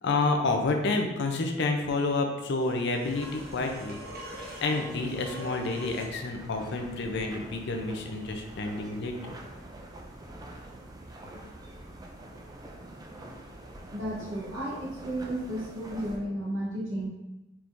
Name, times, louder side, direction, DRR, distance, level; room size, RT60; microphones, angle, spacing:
voice 1, 0.0-4.0 4.6-9.3, left 3 dB, 65° left, 4 dB, 0.5 m, -29 dB
sound 1, 2.6-6.2 9.1-9.2, right 1 dB, 55° right, 1.0 m, -45 dB
sound 2, 3.0-16.2, right 1 dB, 20° right, 0.4 m, -46 dB
voice 2, 13.9-17.1, right 1 dB, 80° right, -6 dB, 1.1 m, -33 dB
4.5 x 3.5 x 2.6 m, 1.0 s
head